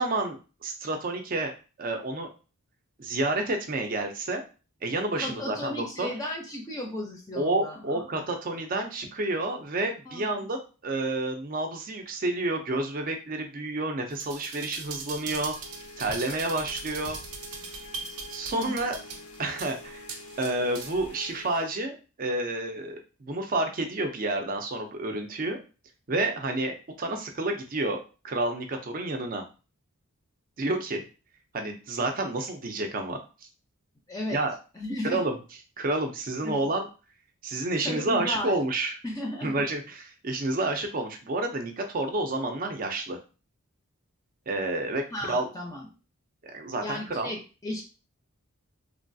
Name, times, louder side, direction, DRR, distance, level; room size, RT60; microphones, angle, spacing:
voice 1, 0.0-1.5 1.8-2.3 3.0-4.4 4.8-6.1 7.4-15.5 16.0-17.2 18.3-19.0 19.4-20.0 20.4-25.6 26.1-29.4 30.6-31.0 31.5-33.2 34.3-34.5 35.1-35.4 35.8-36.9 37.4-38.9 39.4-43.2 44.5-45.5 46.5-47.3, right 2 dB, 40° right, 4 dB, 0.5 m, -29 dB
voice 2, 5.2-8.0 10.1-10.3 18.6-18.7 34.1-34.4 34.7-35.2 36.4-36.7 37.8-38.6 39.0-39.5 45.1-45.9 46.8-47.8, left 1 dB, 15° left, 0 dB, 0.5 m, -35 dB
sound 1, 14.1-21.1 21.5-21.6, right 5 dB, 85° right, 0.6 m, -40 dB
sound 2, 15.5-21.7, left 2 dB, 80° left, 0.4 m, -47 dB
3.1 x 2.3 x 2.6 m, 0.33 s
head